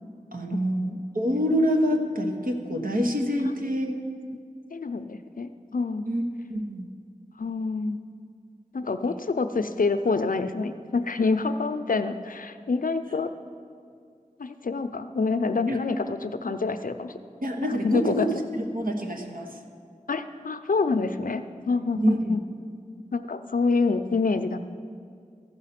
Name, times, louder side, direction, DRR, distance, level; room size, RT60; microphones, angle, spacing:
voice 1, 0.3-4.0 6.1-6.2 6.5-6.9 15.7-15.8 17.4-19.6 21.9-22.4, equal, 85° right, 2 dB, 1.1 m, -26 dB
voice 2, 4.7-6.1 7.4-8.0 8.7-13.3 14.4-17.1 17.6-18.3 20.1-22.4 23.1-24.6, left 4 dB, 80° left, 9 dB, 0.5 m, -27 dB
14.5 x 5.6 x 5.8 m, 2.2 s
wide cardioid pair, 45°, 14 cm